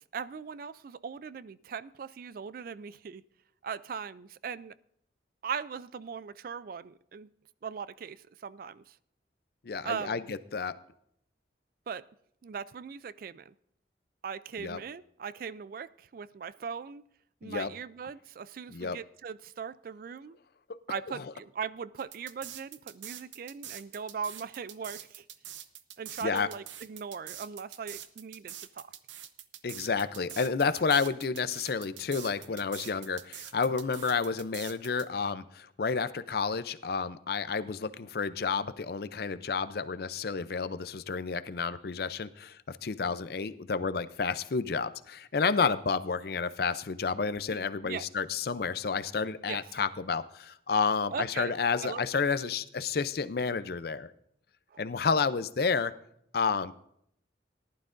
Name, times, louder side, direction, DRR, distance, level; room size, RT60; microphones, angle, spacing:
voice 1, 0.0-3.2 3.6-4.7 5.4-7.3 7.6-9.0 9.8-10.3 11.9-12.0 12.4-13.5 14.2-17.0 17.4-20.4 20.9-25.3 26.0-28.9 47.5-48.0 49.5-49.6 51.1-51.5 51.8-52.0 54.7-54.8, right 6 dB, 50° right, 18 dB, 0.3 m, -39 dB
voice 2, 9.6-10.7 14.6-14.8 17.4-17.7 18.7-19.0 20.7-20.8 26.2-26.5 29.6-54.1 54.8-55.9 56.3-56.7, left 5 dB, 55° left, 13 dB, 0.5 m, -30 dB
sound 1, 22.0-35.1, right 11 dB, 85° right, 0.7 m, -45 dB
18.5 x 11.5 x 2.6 m, 0.72 s
head